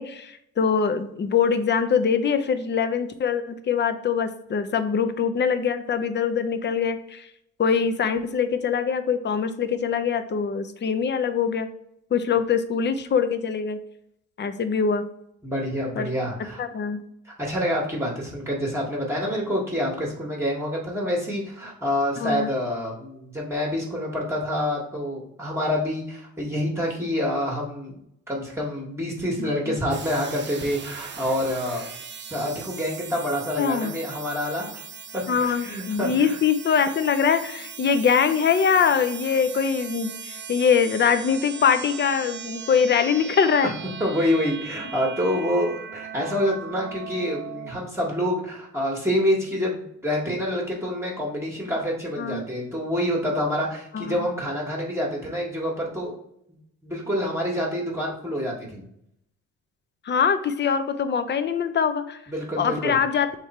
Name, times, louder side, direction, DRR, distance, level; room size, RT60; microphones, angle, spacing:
voice 1, 0.0-7.3 7.6-11.7 12.1-13.8 14.4-15.0 16.0-16.1 16.6-17.0 22.2-22.5 29.4-29.8 33.6-33.9 35.3-43.7 52.2-52.4 53.9-54.3 60.0-62.2 62.6-63.3, left 6 dB, 35° left, 10 dB, 0.6 m, -23 dB
voice 2, 15.4-16.6 17.2-28.0 28.3-31.9 32.3-34.7 35.1-36.4 44.0-56.2 56.8-58.8 62.3-62.9, equal, 10° right, -2 dB, 1.5 m, -27 dB
sound 1, 29.9-47.7, right 7 dB, 35° right, 0.7 m, -39 dB
3.5 x 3.3 x 4.2 m, 0.77 s
supercardioid pair, 60°, 33 cm